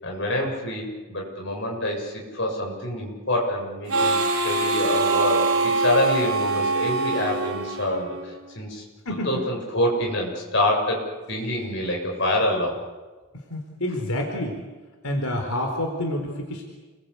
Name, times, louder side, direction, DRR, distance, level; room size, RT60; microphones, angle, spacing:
voice 1, 0.0-8.8 9.2-12.8, left 1 dB, 55° left, 0 dB, 7.4 m, -26 dB
Harmonica, 3.9-8.4, right 3 dB, 80° right, 3.4 m, -24 dB
voice 2, 13.5-14.6 15.0-16.6, left 1 dB, 85° left, 2 dB, 4.3 m, -28 dB
29.5 x 22.5 x 8.3 m, 1.3 s
head